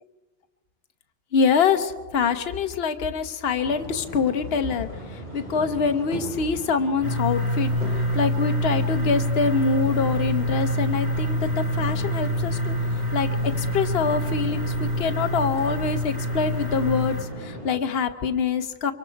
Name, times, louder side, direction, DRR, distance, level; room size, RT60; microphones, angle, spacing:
voice 1, 1.3-7.7 8.1-18.9, left 5 dB, 60° left, 8 dB, 1.1 m, -25 dB
sound 1, 3.6-17.7, equal, 45° right, 8.0 m, -38 dB
sound 2, 7.0-17.2, equal, 20° right, 5.0 m, -26 dB
24.5 x 23.5 x 4.6 m, 1.3 s
omnidirectional pair, 1.2 m